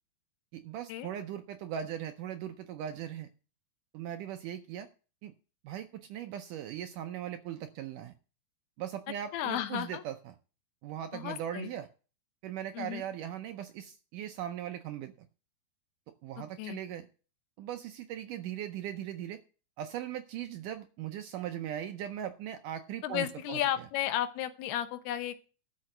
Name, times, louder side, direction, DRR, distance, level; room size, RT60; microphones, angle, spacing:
voice 1, 0.5-3.3 3.9-4.9 5.2-5.3 5.6-8.1 8.8-10.4 10.8-11.9 12.4-15.3 16.2-17.1 17.6-19.4 19.8-23.6, right 10 dB, 85° right, 7 dB, 1.9 m, -39 dB
voice 2, 9.3-10.0 11.1-11.7 12.7-13.0 16.6-16.8 23.0-25.4, left 12 dB, 85° left, 11 dB, 2.9 m, -33 dB
12.5 x 5.7 x 7.6 m, 0.37 s
omnidirectional pair, 4.5 m